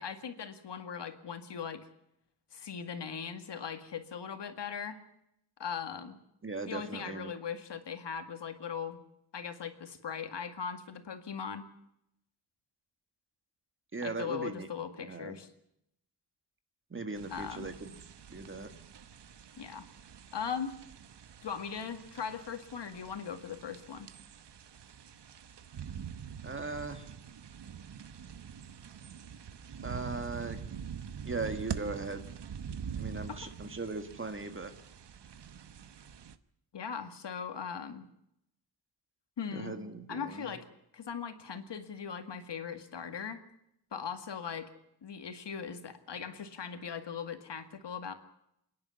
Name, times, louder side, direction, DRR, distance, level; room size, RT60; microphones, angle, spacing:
voice 1, 0.0-1.8 2.5-5.0 5.6-6.2 6.7-9.0 9.3-11.7 14.0-15.5 17.3-17.7 19.6-19.9 20.3-20.7 21.4-24.1 33.3-33.5 36.7-38.1 39.4-39.8 40.1-40.7 40.9-43.4 43.9-44.7 45.0-48.1, left 7 dB, 80° left, 8 dB, 2.1 m, -39 dB
voice 2, 6.4-7.3 13.9-14.7 15.0-15.4 16.9-18.0 18.3-18.7 26.4-27.1 29.8-30.6 31.2-32.4 33.0-34.7 39.5-40.5, right 3 dB, 30° right, 8 dB, 1.8 m, -39 dB
sound 1, 17.1-36.4, right 7 dB, 75° right, 1.1 m, -45 dB
28.0 x 10.5 x 9.7 m, 0.78 s
wide cardioid pair, 175°, 42 cm